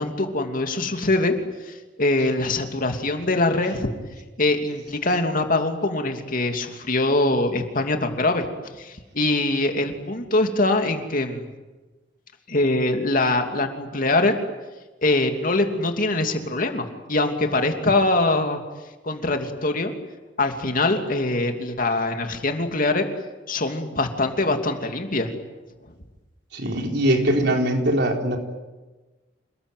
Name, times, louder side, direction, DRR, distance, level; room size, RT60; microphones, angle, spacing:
voice 1, 0.0-1.3 1.6-3.9 4.4-8.5 8.8-11.5 12.5-14.3 15.0-18.6 19.0-19.9 20.4-23.1 23.5-25.3, left 2 dB, 50° left, 5 dB, 2.8 m, -23 dB
voice 2, 26.5-28.4, right 1 dB, 60° right, 2 dB, 4.3 m, -21 dB
28.5 x 20.5 x 9.4 m, 1.2 s
head